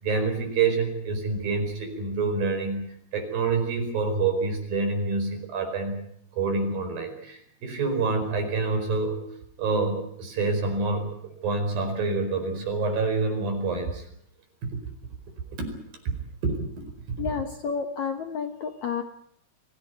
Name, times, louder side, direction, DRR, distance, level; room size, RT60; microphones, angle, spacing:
voice 1, 0.0-6.0 6.3-9.2 9.6-11.1 11.4-14.0 15.6-15.8 16.1-16.2 16.4-16.9, right 4 dB, 60° right, 5 dB, 6.5 m, -27 dB
voice 2, 17.2-19.0, left 6 dB, 60° left, 6 dB, 2.1 m, -30 dB
24.0 x 17.0 x 9.4 m, 0.71 s
omnidirectional pair, 4.7 m